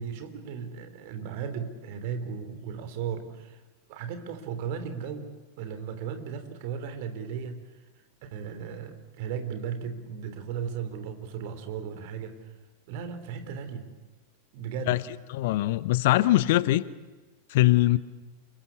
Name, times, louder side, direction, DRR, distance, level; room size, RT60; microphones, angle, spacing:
voice 1, 0.0-3.6 3.9-5.3 5.6-7.6 8.2-12.4 12.9-13.9 14.5-15.0, right 7 dB, 50° right, 9 dB, 3.4 m, -36 dB
voice 2, 15.3-16.8 17.5-18.0, left 16 dB, 50° left, 18 dB, 0.9 m, -22 dB
28.5 x 22.0 x 8.7 m, 1.2 s
figure-of-eight pair, 90°, 0 cm